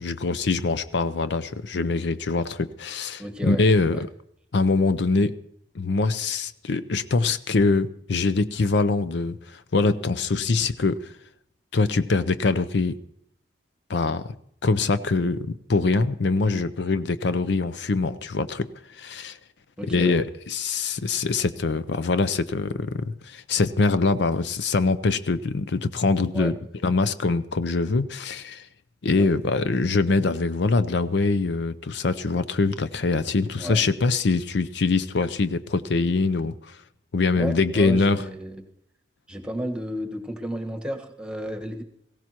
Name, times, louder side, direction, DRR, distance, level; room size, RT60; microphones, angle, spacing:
voice 1, 0.0-4.1 4.5-5.4 5.7-11.1 11.7-13.0 13.9-14.3 14.6-19.4 19.8-26.6 26.8-28.7 29.0-36.8 37.1-38.2, left 3 dB, 65° left, 13 dB, 0.5 m, -23 dB
voice 2, 3.2-3.6 3.9-4.0 16.5-16.6 19.8-20.2 26.3-26.5 29.1-29.3 33.6-33.8 37.3-38.7 39.3-41.8, equal, 5° right, 4 dB, 1.3 m, -32 dB
19.0 x 16.5 x 2.9 m, 0.73 s
head